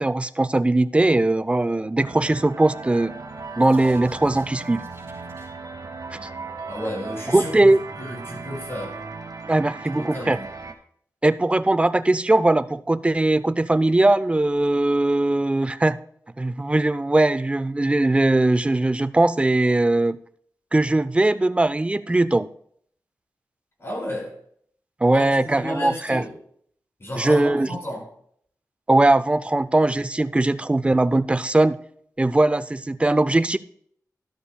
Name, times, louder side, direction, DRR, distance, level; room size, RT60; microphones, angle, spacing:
voice 1, 0.0-3.1 3.6-4.8 6.2-6.3 7.3-7.8 9.5-10.4 11.2-16.0 16.4-20.2 20.7-22.5 25.0-26.2 27.2-27.7 28.9-31.8 32.2-33.6, right 2 dB, 20° right, 13 dB, 0.4 m, -20 dB
sound 1, 2.0-10.7, right 4 dB, 70° right, 1.0 m, -37 dB
sound 2, 2.5-5.5, right 1 dB, 40° right, 4.8 m, -46 dB
voice 2, 6.7-9.0 9.9-10.5 23.8-24.4 25.1-26.3 27.0-28.1, left 1 dB, 40° left, -1 dB, 5.2 m, -32 dB
12.5 x 12.0 x 2.2 m, 0.63 s
wide cardioid pair, 65°, 6 cm